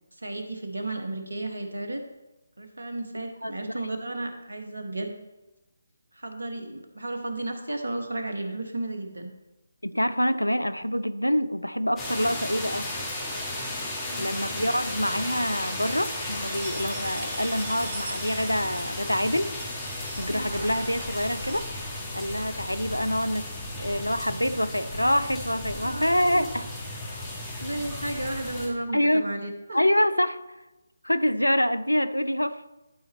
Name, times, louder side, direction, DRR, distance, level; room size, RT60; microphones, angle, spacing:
voice 1, 0.1-2.0 2.6-5.2 6.1-9.3 14.0-14.3 20.3-20.5 25.8-26.5 27.6-29.8, right 2 dB, 65° right, 1.2 m, -33 dB
voice 2, 3.4-3.7 9.8-12.9 14.2-19.6 20.2-21.7 22.1-23.5 23.8-26.6 28.9-29.3 29.7-30.4 31.0-32.6, equal, 85° left, 0.5 m, -26 dB
sound 1, 12.0-28.7, left 1 dB, 10° left, 1.8 m, -34 dB
sound 2, 13.9-14.6 14.9-21.7, right 3 dB, 40° right, 1.1 m, -43 dB
12.0 x 4.1 x 4.1 m
figure-of-eight pair, 150°, 0 cm